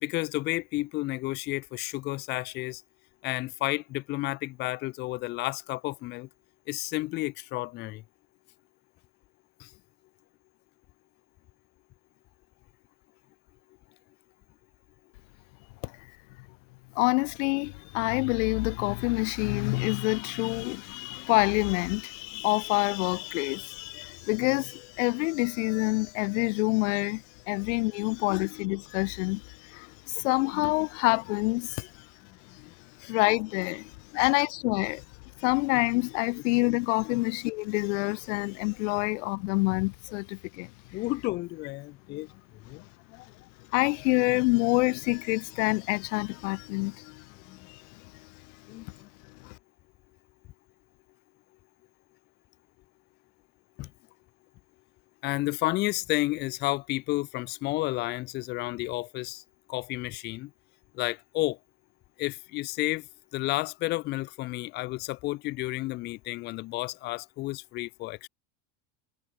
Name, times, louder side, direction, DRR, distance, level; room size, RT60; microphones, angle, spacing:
voice 1, 0.0-2.8 3.2-6.3 6.7-8.0 9.6-9.7 27.6-27.7 28.3-28.5 32.5-32.6 33.0-33.1 34.1-34.3 36.4-36.5 37.0-37.2 40.9-42.3 42.6-42.8 43.1-43.2 47.3-47.6 48.7-48.9 53.8-53.9 55.2-59.4 59.7-60.5 60.9-61.6 62.2-63.1 63.3-68.3, left 20 dB, 30° left, 0.4 m, -31 dB
voice 2, 17.0-31.9 33.1-35.0 35.4-40.7 43.7-47.2 47.7-47.8 49.4-49.5, left 26 dB, 80° left, 0.6 m, -27 dB
supercardioid pair, 155°, 36 cm